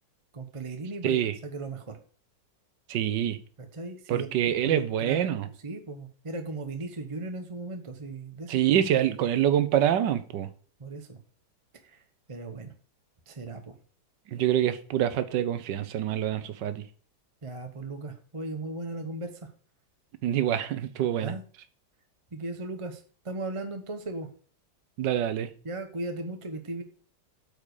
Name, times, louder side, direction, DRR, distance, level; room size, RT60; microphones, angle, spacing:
voice 1, 0.3-2.0 3.6-8.6 10.8-11.2 11.8-12.0 12.3-12.7 13.3-13.7 17.4-19.5 21.2-21.4 22.3-24.3 25.6-26.8, right 2 dB, 25° right, 0.7 m, -37 dB
voice 2, 1.0-1.3 2.9-3.4 4.1-5.5 8.5-10.5 14.3-16.8 20.2-21.3 25.0-25.5, right 10 dB, 85° right, 1.5 m, -26 dB
8.6 x 5.0 x 6.6 m
omnidirectional pair, 1.9 m